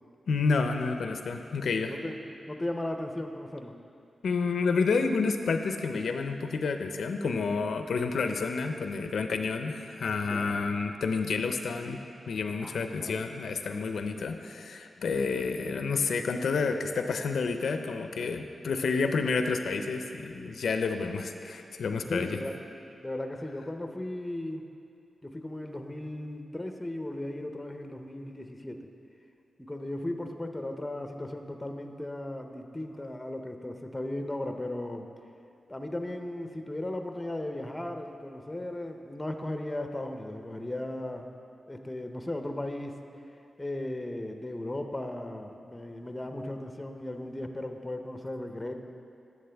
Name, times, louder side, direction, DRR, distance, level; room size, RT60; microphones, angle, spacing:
voice 1, 0.3-1.9 4.2-12.0 12.3-22.4, left 4 dB, 80° left, 6 dB, 0.5 m, -29 dB
voice 2, 1.9-3.8 10.2-10.6 12.6-13.2 22.1-22.6 23.0-24.7 25.2-28.9 29.6-35.1 35.7-41.3 41.7-43.0 43.6-48.7, left 1 dB, 15° left, 5 dB, 0.6 m, -36 dB
11.0 x 7.5 x 3.4 m, 2.6 s
wide cardioid pair, 95°, 0 cm